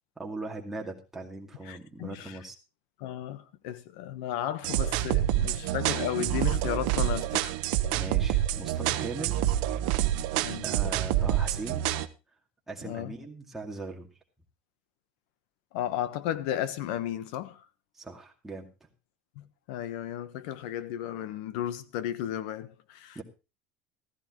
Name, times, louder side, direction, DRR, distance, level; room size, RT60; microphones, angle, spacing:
voice 1, 0.2-2.5 5.4-5.6 7.9-9.5 10.6-11.9 12.7-14.1 18.0-18.7 23.1-23.2, right 3 dB, 5° right, 2.3 m, -39 dB
voice 2, 1.6-2.4 3.0-7.5 10.4-10.6 12.8-13.2 15.7-17.7 19.3-23.2, left 11 dB, 75° left, 1.2 m, -34 dB
sound 1, 4.6-12.1, right 12 dB, 75° right, 0.9 m, -27 dB
14.5 x 14.5 x 3.1 m
cardioid pair, 160°, 4 cm